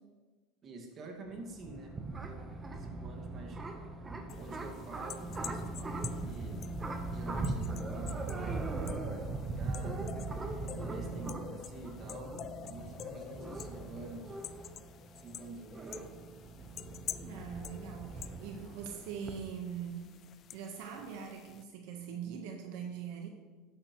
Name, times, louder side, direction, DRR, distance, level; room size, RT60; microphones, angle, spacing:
voice 1, 0.6-1.9 2.3-3.6 4.3-6.7 7.1-10.2 10.7-12.3 12.6-14.4 15.2-16.1, right 3 dB, 35° right, 1 dB, 2.0 m, -48 dB
sound 1, 1.3-19.4, right 3 dB, 15° right, 1.0 m, -40 dB
sound 2, 4.3-21.6, left 10 dB, 40° left, 0.4 m, -48 dB
voice 2, 17.2-20.1 20.5-23.3, right 7 dB, 70° right, 3 dB, 1.2 m, -42 dB
12.0 x 9.8 x 3.1 m, 1.3 s
supercardioid pair, 135°, 0 cm